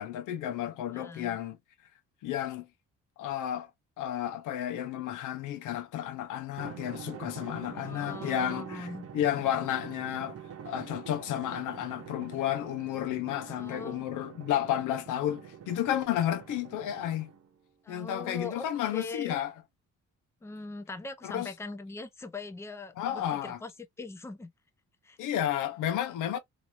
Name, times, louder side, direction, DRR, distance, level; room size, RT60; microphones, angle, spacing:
voice 1, 0.0-1.6 2.2-2.7 3.2-3.7 4.0-10.4 10.6-17.3 17.9-19.5 21.2-21.5 23.0-23.6 25.2-26.4, left 11 dB, 90° left, 0.8 m, -32 dB
voice 2, 0.9-1.4 7.6-9.1 13.5-14.0 17.8-18.6 18.9-19.4 20.4-23.7 24.0-24.5 25.0-25.2 26.3-26.4, left 3 dB, 10° left, 0.5 m, -41 dB
Drum, 6.6-17.6, right 7 dB, 50° right, 0.9 m, -45 dB
2.9 x 2.7 x 2.4 m
cardioid pair, 90°, 30 cm